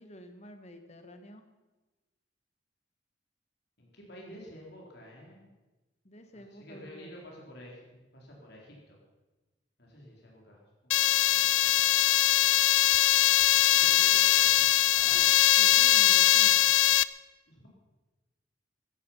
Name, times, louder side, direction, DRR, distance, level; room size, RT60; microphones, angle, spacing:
voice 1, 0.0-1.5 6.0-7.4 11.3-11.5 15.0-15.3 15.6-16.7, equal, 35° left, 7 dB, 1.7 m, -49 dB
voice 2, 3.8-5.5 6.3-9.0 9.8-11.8 13.7-15.5 17.5-17.7, equal, 60° left, -2 dB, 3.9 m, -51 dB
sound 1, 10.9-17.0, left 14 dB, 80° left, 0.5 m, -22 dB
15.0 x 15.0 x 5.7 m, 1.1 s
head